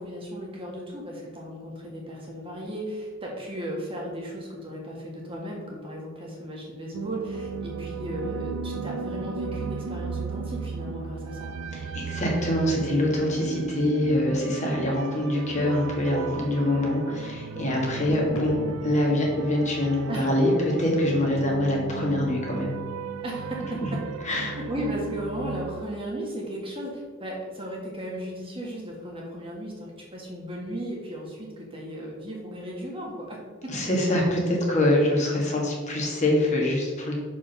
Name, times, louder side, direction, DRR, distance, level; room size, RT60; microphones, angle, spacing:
voice 1, 0.0-11.5 20.1-20.3 23.2-24.0 24.5-33.7, equal, 25° right, -2 dB, 1.6 m, -35 dB
sound 1, 6.9-25.9, right 5 dB, 80° right, 0.4 m, -36 dB
voice 2, 11.7-18.5 18.8-22.8 23.7-24.0 24.2-24.6 33.7-37.2, left 1 dB, 35° left, -2 dB, 1.7 m, -24 dB
sound 2, 13.5-24.3, equal, 80° left, 1.1 m, -44 dB
6.1 x 4.9 x 5.7 m, 1.5 s
head